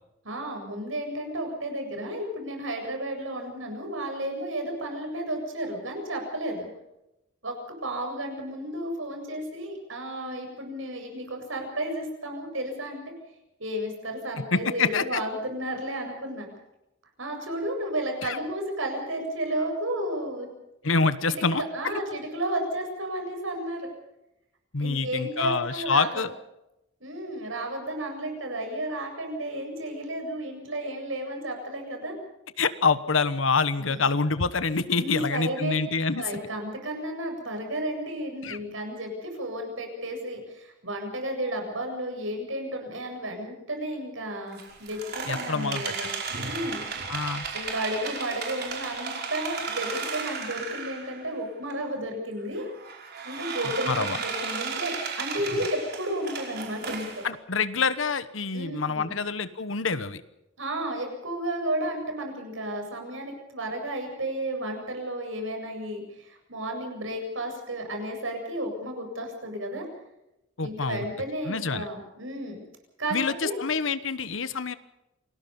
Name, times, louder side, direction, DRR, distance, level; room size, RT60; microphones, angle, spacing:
voice 1, 0.2-6.7 7.4-7.6 7.8-13.0 13.6-16.5 17.2-20.5 21.4-23.9 24.8-26.2 27.0-32.2 33.8-34.0 34.9-35.8 36.1-46.1 46.4-46.8 47.5-52.7 53.2-57.2 58.5-59.2 60.6-69.8 70.6-72.6 73.0-73.2 73.4-73.6, right 1 dB, 75° right, 4 dB, 7.9 m, -32 dB
voice 2, 14.5-15.2 18.2-18.4 20.8-21.6 24.7-26.3 32.6-36.2 38.4-38.6 45.3-45.9 47.1-47.4 53.9-54.2 57.2-60.2 70.6-71.1 71.5-71.9 73.1-74.7, left 4 dB, 75° left, 13 dB, 1.2 m, -26 dB
sound 1, 44.5-51.3 51.7-51.8 52.5-57.3, right 5 dB, 55° right, 5.3 m, -34 dB
28.0 x 20.0 x 5.5 m, 0.88 s
head